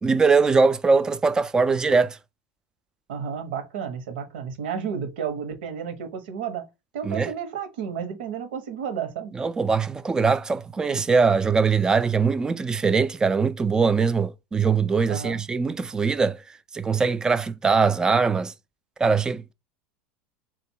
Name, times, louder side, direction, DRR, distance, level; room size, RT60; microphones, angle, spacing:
voice 1, 0.0-2.2 7.1-7.3 9.3-16.4 16.7-18.5 19.0-19.5, right 4 dB, 15° right, 0.3 m, -21 dB
voice 2, 3.1-6.7 6.9-9.3 15.1-15.4, right 7 dB, 90° right, 1.2 m, -32 dB
3.8 x 2.6 x 4.5 m
supercardioid pair, 150°, 5 cm